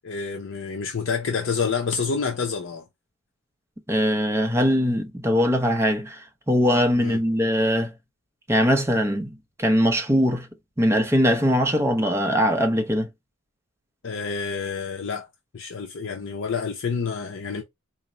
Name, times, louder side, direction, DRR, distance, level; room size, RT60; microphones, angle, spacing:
voice 1, 0.0-2.8 7.0-7.2 14.0-15.3 15.5-17.6, left 5 dB, 55° left, 0.5 m, -28 dB
voice 2, 3.9-7.9 8.5-10.5 10.8-13.1, equal, 10° right, 0.6 m, -21 dB
4.3 x 2.0 x 3.7 m
head